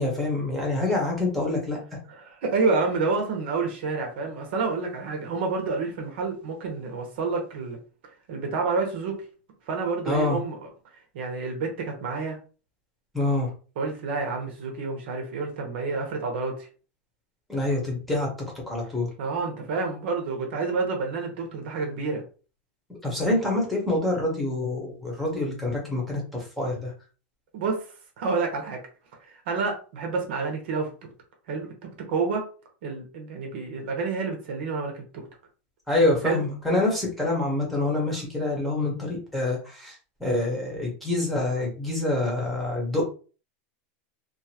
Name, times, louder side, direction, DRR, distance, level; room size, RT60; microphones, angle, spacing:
voice 1, 0.0-1.8 10.1-10.4 13.1-13.5 17.5-18.3 18.7-19.1 23.0-26.2 26.6-26.9 35.9-39.9 40.2-43.1, left 2 dB, ahead, -3 dB, 1.0 m, -26 dB
voice 2, 2.1-7.8 8.3-9.2 9.7-10.7 11.1-12.4 13.8-16.7 19.2-22.2 27.5-27.8 28.2-28.8 29.5-30.9 31.5-32.5 32.8-35.2 36.2-36.4, right 4 dB, 70° right, 2 dB, 1.0 m, -29 dB
2.7 x 2.5 x 2.8 m, 0.36 s
supercardioid pair, 160°, 6 cm